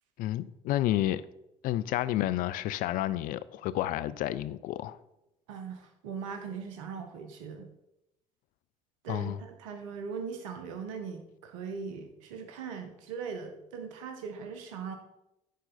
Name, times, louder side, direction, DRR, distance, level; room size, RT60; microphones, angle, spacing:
voice 1, 0.2-1.2 1.6-5.0 9.1-9.4, left 14 dB, 60° left, 0.4 m, -30 dB
voice 2, 5.5-7.7 9.0-15.0, right 6 dB, 75° right, 0.9 m, -40 dB
10.0 x 3.9 x 4.2 m
hypercardioid pair, 50°, 16 cm